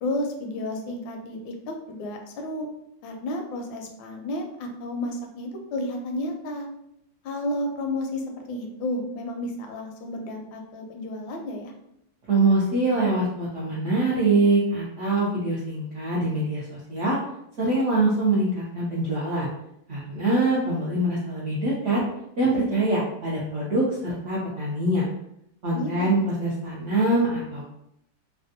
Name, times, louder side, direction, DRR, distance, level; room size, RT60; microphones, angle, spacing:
voice 1, 0.0-2.7 3.0-6.7 7.2-11.7 25.7-26.2, left 1 dB, 80° left, 3 dB, 1.3 m, -32 dB
voice 2, 12.3-17.2 17.6-19.5 19.9-22.0 22.4-25.1 25.6-27.7, right 2 dB, 70° right, -7 dB, 0.7 m, -24 dB
3.4 x 2.2 x 2.6 m, 0.79 s
omnidirectional pair, 2.1 m